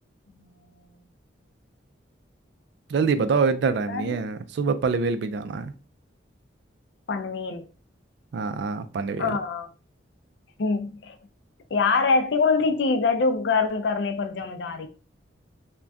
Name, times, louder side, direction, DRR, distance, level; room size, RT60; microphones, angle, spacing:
voice 1, 2.9-5.7 8.3-9.3, right 4 dB, 65° right, 0.3 m, -25 dB
voice 2, 7.1-7.6 9.2-9.7 10.6-11.2 11.7-14.9, left 4 dB, 65° left, 0.4 m, -24 dB
2.5 x 2.2 x 3.3 m
head